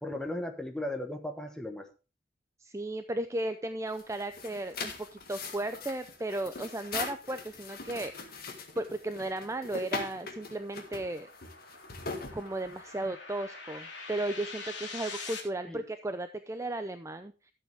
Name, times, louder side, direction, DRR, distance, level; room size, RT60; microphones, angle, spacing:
voice 1, 0.0-1.9 15.6-15.8, left 1 dB, 5° left, 4 dB, 1.4 m, -36 dB
voice 2, 2.6-11.3 12.3-17.5, right 2 dB, 15° right, 9 dB, 0.5 m, -35 dB
sound 1, 3.9-13.0, left 4 dB, 55° left, 1.9 m, -41 dB
sound 2, 8.7-15.4, left 4 dB, 85° left, 2.9 m, -45 dB
13.0 x 8.0 x 3.5 m, 0.31 s
head